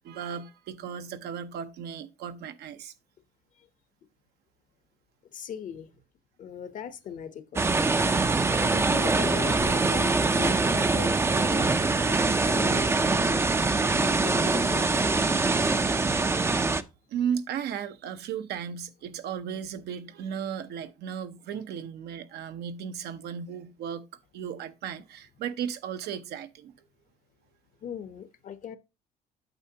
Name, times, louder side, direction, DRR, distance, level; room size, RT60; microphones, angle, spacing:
voice 1, 0.0-2.9 8.5-8.7 10.1-10.4 14.3-14.6 17.1-24.1 24.3-26.7, right 8 dB, 75° right, 0.8 m, -35 dB
voice 2, 5.3-5.9 6.4-7.8 8.4-13.5 14.0-15.1 27.8-28.8, left 8 dB, 50° left, 0.9 m, -39 dB
sound 1, 7.6-16.8, right 3 dB, 15° right, 0.5 m, -24 dB
8.8 x 6.5 x 2.8 m
cardioid pair, 110°, 17 cm